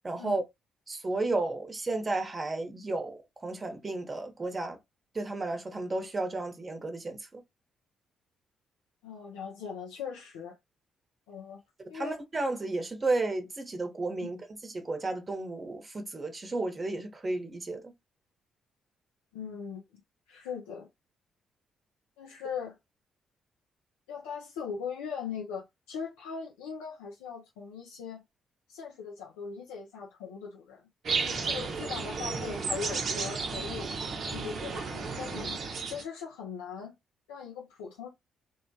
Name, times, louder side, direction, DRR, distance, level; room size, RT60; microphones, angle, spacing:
voice 1, 0.0-0.4 0.9-4.8 5.1-7.4 11.9-17.9, right 2 dB, 35° right, 0.9 m, -33 dB
voice 2, 9.0-10.6 11.3-11.6 11.9-12.2 14.2-14.3 19.3-19.8 20.3-20.9 22.2-22.8 24.1-28.2 28.7-30.8 31.4-33.9 34.3-36.9 37.3-38.1, left 6 dB, 85° left, 0.4 m, -40 dB
sound 1, 31.0-36.0, right 4 dB, 60° right, 0.7 m, -33 dB
3.1 x 2.2 x 2.7 m
hypercardioid pair, 50°, 0 cm